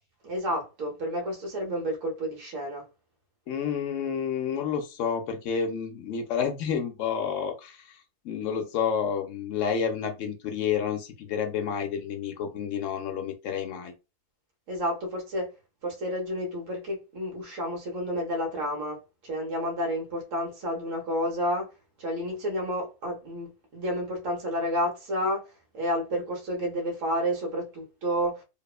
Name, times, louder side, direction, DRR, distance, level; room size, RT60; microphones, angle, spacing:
voice 1, 0.2-2.8 14.7-15.5 15.8-21.7 22.0-25.5 25.7-28.4, equal, 65° right, 1.3 m, -30 dB
voice 2, 3.5-13.9, left 7 dB, 70° left, 0.9 m, -30 dB
2.9 x 2.1 x 2.3 m
omnidirectional pair, 1.4 m